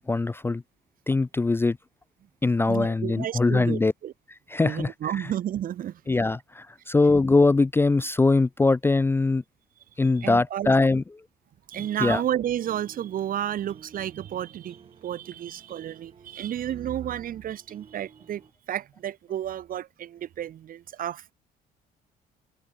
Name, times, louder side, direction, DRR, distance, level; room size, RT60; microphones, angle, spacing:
voice 1, 0.1-0.6 1.1-1.8 2.4-3.9 4.5-4.9 5.2-5.3 6.1-9.4 10.0-11.0 12.0-12.2, left 3 dB, 15° left, 0.5 m, -22 dB
voice 2, 2.7-4.1 4.6-6.0 10.2-10.7 11.7-18.4 18.7-21.3, right 11 dB, 55° right, 2.1 m, -32 dB
sound 1, 11.8-18.5, right 6 dB, 35° right, 7.1 m, -53 dB
open air
cardioid pair, 110°, 17 cm